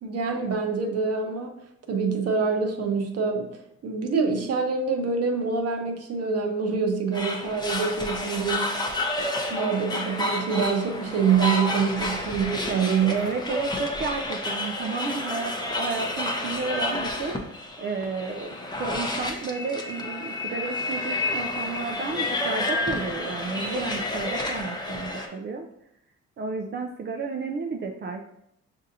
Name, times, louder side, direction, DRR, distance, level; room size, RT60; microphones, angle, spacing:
voice 1, 0.0-1.5 1.9-3.5 3.8-8.7 9.2-9.3 9.5-13.3, right 5 dB, 55° right, 4 dB, 0.8 m, -25 dB
sound 1, 7.1-25.3, left 2 dB, 15° left, 0.6 m, -30 dB
voice 2, 13.1-17.4 17.8-25.7 26.4-28.2, right 4 dB, 40° right, 2 dB, 0.4 m, -32 dB
6.1 x 2.7 x 2.6 m, 0.77 s
cardioid pair, 90°, 30 cm